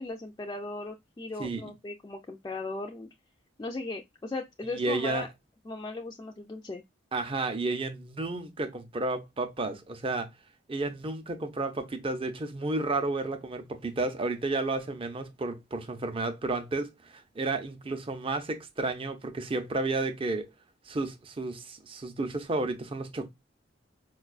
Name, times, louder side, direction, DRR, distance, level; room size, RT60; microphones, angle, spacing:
voice 1, 0.0-3.1 3.6-5.3 5.7-6.8, left 2 dB, 20° left, 0.3 m, -37 dB
voice 2, 4.7-5.3 7.1-10.3 10.7-20.5 20.9-23.3, right 2 dB, 30° right, 0.5 m, -32 dB
4.5 x 2.3 x 2.3 m
head